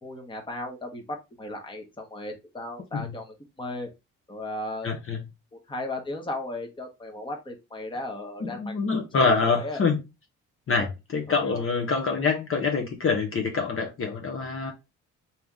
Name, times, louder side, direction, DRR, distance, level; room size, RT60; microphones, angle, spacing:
voice 1, 0.0-3.9 4.3-4.9 5.7-8.7 9.2-9.8 10.7-10.9 11.3-11.6 12.1-12.3, left 1 dB, 15° left, 1.1 m, -36 dB
voice 2, 4.8-5.2 8.4-10.0 10.7-14.7, left 4 dB, 45° left, 0.9 m, -25 dB
3.4 x 2.9 x 3.6 m
cardioid pair, 90°, 30 cm